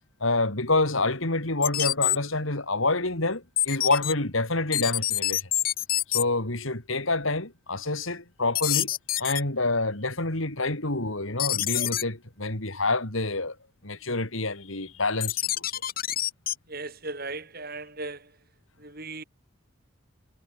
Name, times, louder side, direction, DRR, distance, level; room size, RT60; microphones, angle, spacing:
voice 1, 0.2-5.5 6.1-8.9 9.2-13.6 13.8-15.7, left 2 dB, 70° left, 3.7 m, -27 dB
sound 1, 1.6-2.2 3.6-4.1 4.7-6.2 8.5-9.4 11.4-12.0 15.2-16.5, left 13 dB, 40° left, 2.5 m, -26 dB
voice 2, 16.7-18.3 18.8-19.2, right 3 dB, 45° right, 7.9 m, -37 dB
head